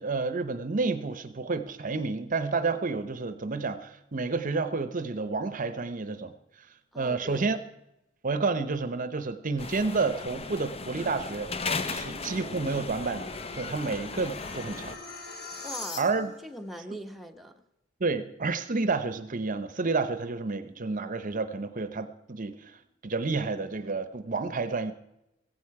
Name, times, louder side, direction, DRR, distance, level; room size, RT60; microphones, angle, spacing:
voice 1, 0.0-6.3 7.0-7.6 8.2-11.5 11.8-15.0 15.5-15.7 16.0-16.3 18.0-22.7 23.0-24.9, right 3 dB, 40° right, 12 dB, 0.8 m, -30 dB
voice 2, 6.9-7.6 15.6-17.5, right 1 dB, ahead, 3 dB, 1.0 m, -42 dB
sound 1, 9.6-15.0, left 4 dB, 30° left, 0.8 m, -36 dB
sound 2, 11.5-16.5, left 3 dB, 55° left, 2.7 m, -44 dB
16.5 x 15.5 x 4.8 m, 0.86 s
head